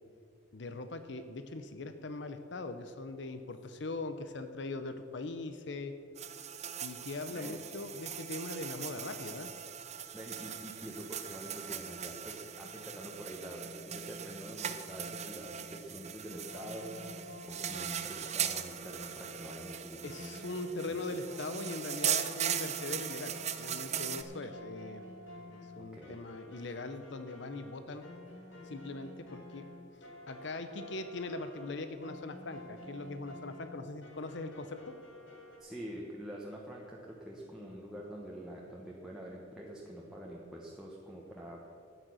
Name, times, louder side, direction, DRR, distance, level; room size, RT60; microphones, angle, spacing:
voice 1, 0.5-5.9 6.8-9.5 20.0-25.0 25.4-28.0 28.7-29.6 30.3-34.9, left 2 dB, 70° left, 9 dB, 0.7 m, -41 dB
sound 1, 6.2-24.2, right 9 dB, 35° right, 0.6 m, -39 dB
voice 2, 10.1-20.3 20.9-21.0 25.8-26.2 35.6-41.6, equal, 5° right, -4 dB, 1.2 m, -46 dB
sound 2, 16.3-35.6, left 1 dB, 85° left, 2.2 m, -51 dB
12.0 x 9.2 x 6.2 m, 2.7 s
head